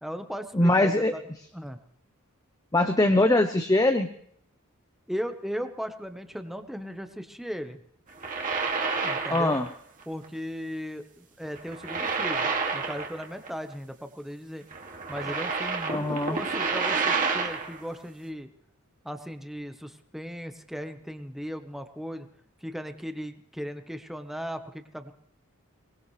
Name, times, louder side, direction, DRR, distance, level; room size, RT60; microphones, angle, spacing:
voice 1, 0.0-1.2 1.5-1.8 5.1-7.8 9.0-9.6 10.1-14.6 15.1-18.5 19.0-22.3 22.6-25.1, equal, ahead, 7 dB, 1.0 m, -37 dB
voice 2, 0.5-1.1 2.7-4.1 9.3-9.7 15.9-16.4, left 2 dB, 15° left, 7 dB, 0.7 m, -22 dB
sound 1, 8.1-9.7 10.0-10.2 11.6-13.5 13.7-13.8 14.7-17.8, right 4 dB, 40° right, 2.2 m, -29 dB
23.0 x 19.5 x 3.2 m, 0.67 s
head